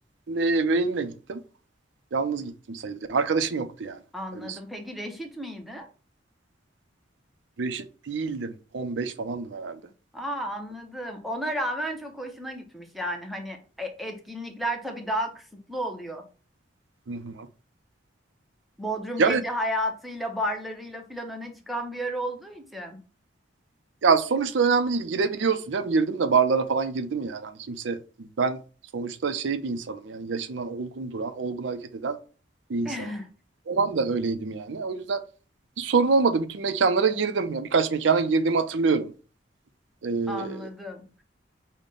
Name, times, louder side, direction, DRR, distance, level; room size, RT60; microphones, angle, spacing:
voice 1, 0.3-1.4 2.1-4.0 4.4-4.6 7.6-9.8 17.1-17.5 19.2-19.4 24.0-28.6 28.9-32.2 32.7-32.9 33.7-35.2 35.8-39.1 40.0-40.6, right 4 dB, 80° right, 0.5 m, -26 dB
voice 2, 4.1-5.9 10.1-16.2 18.8-23.0 32.8-33.3 40.3-41.2, equal, ahead, 0.6 m, -33 dB
5.2 x 2.1 x 3.7 m
head